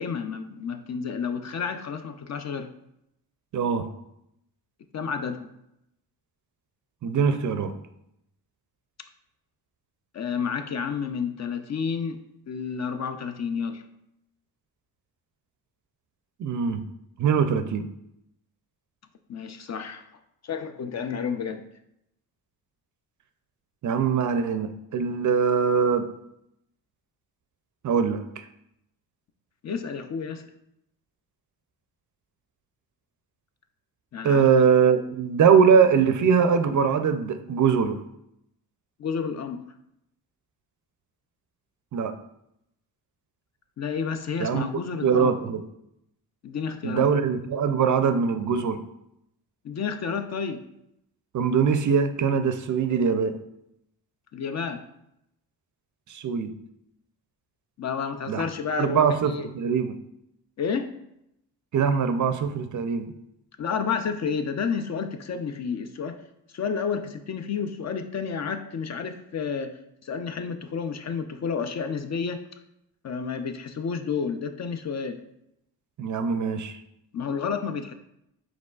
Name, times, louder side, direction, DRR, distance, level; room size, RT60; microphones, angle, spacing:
voice 1, 0.0-2.7 4.9-5.5 10.1-12.2 12.5-13.8 19.3-20.1 20.4-21.6 29.6-30.5 34.1-34.5 39.0-39.6 43.8-45.4 46.4-47.1 49.6-50.6 54.3-54.8 57.8-59.5 60.6-60.9 63.6-66.2 66.5-72.4 73.0-75.2 77.1-77.9, left 6 dB, 40° left, 8 dB, 0.4 m, -30 dB
voice 2, 3.5-3.9 7.0-7.7 16.4-16.8 17.2-17.9 23.8-26.1 27.8-28.4 34.2-38.0 41.9-42.1 44.4-44.6 45.0-45.6 46.8-48.8 51.3-53.4 56.1-56.5 58.3-58.4 58.8-60.0 61.7-63.1 76.0-76.8, right 6 dB, 45° right, 9 dB, 0.4 m, -22 dB
5.2 x 3.8 x 2.3 m, 0.79 s
supercardioid pair, 60°, 43 cm